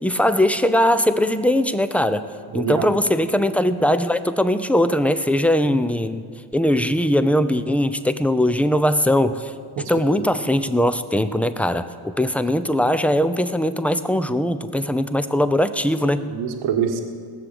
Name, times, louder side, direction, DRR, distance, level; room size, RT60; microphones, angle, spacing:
voice 1, 0.0-2.3 2.5-6.2 6.5-9.5 9.8-16.3, left 1 dB, 5° left, 11 dB, 0.7 m, -20 dB
voice 2, 2.5-2.9 9.8-10.2 16.3-17.0, right 8 dB, 75° right, 4 dB, 1.6 m, -25 dB
18.0 x 6.9 x 8.0 m, 2.1 s
supercardioid pair, 80°, 47 cm